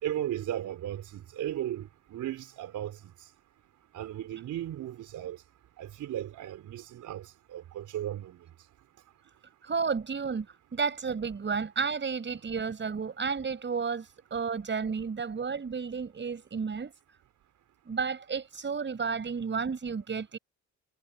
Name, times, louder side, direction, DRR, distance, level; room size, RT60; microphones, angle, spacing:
voice 1, 0.0-3.0 3.9-5.4 5.8-8.4, right 12 dB, 80° right, 4.5 m, -36 dB
voice 2, 9.7-10.5 10.7-16.9 17.9-20.4, right 5 dB, 40° right, 6.4 m, -32 dB
cardioid pair, 90°, 30 cm